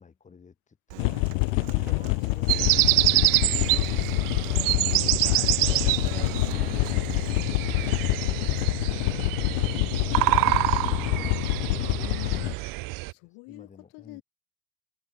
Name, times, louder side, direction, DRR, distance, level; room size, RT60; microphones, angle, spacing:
voice 1, 0.0-4.0 4.8-9.4 12.4-14.2, left 5 dB, 20° left, 7.3 m, -52 dB
Human voice / Acoustic guitar, 0.9-7.3, right 36 dB, 80° right, 7.3 m, -44 dB
sound 1, 1.0-12.5, left 33 dB, 85° left, 0.9 m, -26 dB
sound 2, 2.5-13.1, right 23 dB, 60° right, 2.7 m, -26 dB
voice 2, 4.5-5.7 6.3-7.2 9.7-9.9 12.0-14.2, left 30 dB, 65° left, 4.7 m, -46 dB
cardioid pair, 160°, 38 cm